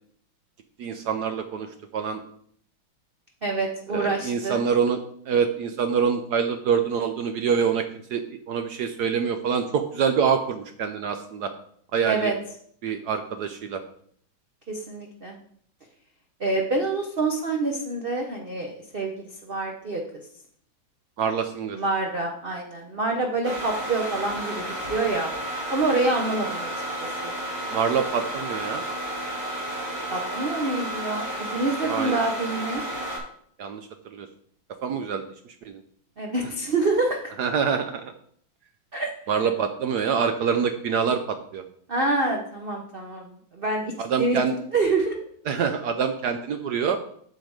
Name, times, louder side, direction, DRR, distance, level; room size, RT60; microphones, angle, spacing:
voice 1, 0.8-2.2 3.9-7.8 8.1-11.5 11.9-12.3 12.8-13.8 21.2-21.8 27.7-28.8 31.8-32.2 33.6-34.3 34.8-35.2 35.6-35.8 37.4-38.1 39.3-41.6 44.0-44.6 45.5-47.0, right 6 dB, 70° right, 8 dB, 1.0 m, -25 dB
voice 2, 3.4-4.6 12.1-12.3 14.7-15.4 16.4-20.0 21.7-24.6 24.9-25.3 25.7-26.7 27.0-27.3 30.1-32.8 36.2-37.2 38.9-39.1 41.9-45.2, right 3 dB, 45° right, 1 dB, 0.7 m, -26 dB
sound 1, 23.4-33.2, right 1 dB, 85° right, 5.2 m, -32 dB
8.0 x 6.7 x 4.8 m, 0.63 s
omnidirectional pair, 2.3 m